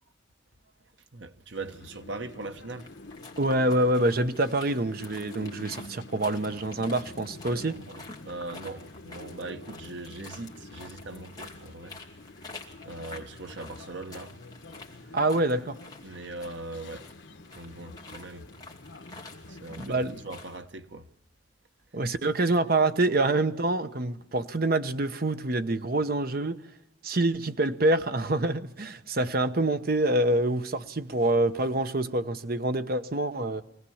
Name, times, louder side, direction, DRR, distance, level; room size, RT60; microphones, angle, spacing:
voice 1, 1.1-2.9 7.5-12.0 12.8-14.4 16.0-17.1 17.5-18.5 19.5-21.1, right 2 dB, 80° right, 1.2 m, -40 dB
sound 1, 1.5-20.2, left 2 dB, 80° left, 1.2 m, -47 dB
sound 2, 2.7-20.6, left 3 dB, 20° left, 2.5 m, -49 dB
voice 2, 3.4-7.8 15.1-15.8 19.8-20.2 21.9-26.6 27.0-33.6, right 2 dB, 55° right, 1.0 m, -26 dB
24.0 x 18.0 x 7.2 m
head